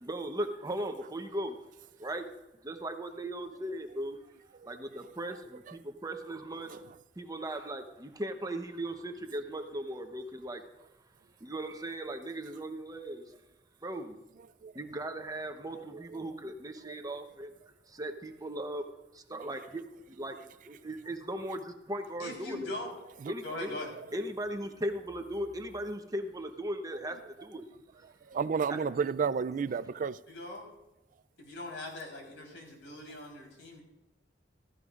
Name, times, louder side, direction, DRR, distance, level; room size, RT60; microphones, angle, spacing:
voice 1, 0.0-1.6 2.0-2.2 2.6-4.2 4.6-6.8 7.2-10.6 11.4-13.4 13.8-14.2 14.7-17.5 17.9-18.8 19.1-22.7 23.3-23.8 24.1-27.7 28.0-28.1, right 1 dB, 20° right, 0.9 m, -38 dB
voice 2, 22.2-22.9 23.4-23.9 30.3-30.7 31.4-33.8, left 2 dB, 90° left, 3.9 m, -41 dB
voice 3, 28.2-30.2, right 6 dB, 45° right, 0.3 m, -32 dB
16.0 x 14.5 x 2.5 m
head